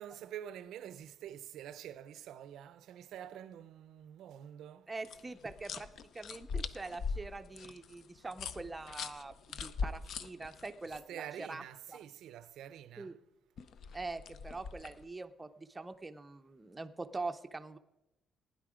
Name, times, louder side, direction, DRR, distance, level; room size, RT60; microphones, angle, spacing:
voice 1, 0.0-4.9 10.9-13.1, right 10 dB, 75° right, 0.5 m, -47 dB
voice 2, 4.9-5.9 6.1-11.6 11.9-12.0 13.0-13.1 13.9-17.8, right 3 dB, 15° right, 0.5 m, -43 dB
sound 1, 5.0-11.0 13.6-15.0, left 5 dB, 55° left, 0.6 m, -41 dB
16.0 x 10.0 x 4.9 m
cardioid pair, 165°, 0 cm